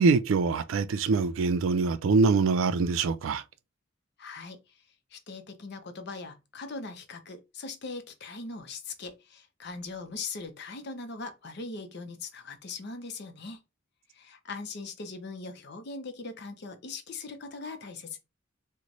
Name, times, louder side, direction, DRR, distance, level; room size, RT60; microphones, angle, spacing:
voice 1, 0.0-3.4, right 4 dB, 80° right, 0.4 m, -24 dB
voice 2, 4.2-4.8 5.1-13.6 14.1-18.2, left 3 dB, 55° left, 0.6 m, -40 dB
3.0 x 2.1 x 3.8 m
head